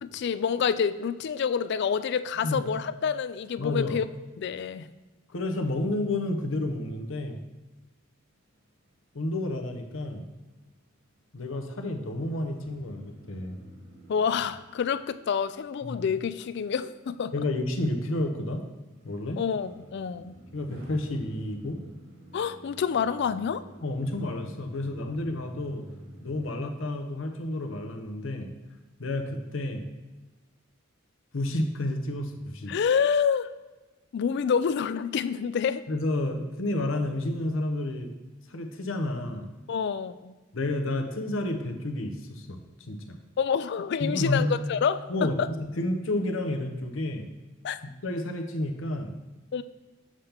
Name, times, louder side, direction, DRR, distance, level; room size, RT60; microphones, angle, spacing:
voice 1, 0.0-4.0 4.4-4.9 14.1-17.3 19.4-20.4 22.3-23.6 32.7-33.5 34.1-35.8 39.7-40.3 43.4-45.5 47.6-47.8 49.5-49.6, left 6 dB, 55° left, 14 dB, 0.3 m, -27 dB
voice 2, 3.6-4.0 5.3-7.4 9.1-10.3 11.3-13.6 15.8-16.0 17.3-18.6 19.0-19.4 20.5-21.8 23.8-25.8 26.2-28.5 29.0-29.8 31.3-32.7 35.9-38.1 38.5-39.5 40.5-43.2 44.0-44.5 45.1-47.3 48.0-49.1, left 1 dB, 70° left, 4 dB, 0.8 m, -30 dB
sound 1, 8.3-26.5, equal, 80° right, 1.9 m, -51 dB
7.4 x 5.7 x 3.4 m, 1.1 s
head